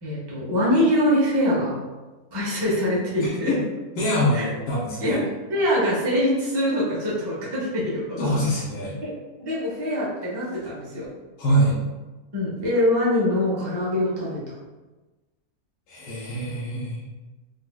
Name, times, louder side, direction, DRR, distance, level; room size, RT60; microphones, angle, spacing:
voice 1, 0.0-1.8 2.3-3.5 4.3-4.5 5.0-8.2 9.0-9.1 9.4-11.1 12.3-14.5, left 1 dB, 40° right, -6 dB, 0.3 m, -24 dB
voice 2, 3.2-3.6 4.0-5.2 8.2-9.0 11.4-11.8 15.9-17.1, equal, 80° left, -8 dB, 1.2 m, -24 dB
3.9 x 2.3 x 2.2 m, 1.2 s
omnidirectional pair, 1.7 m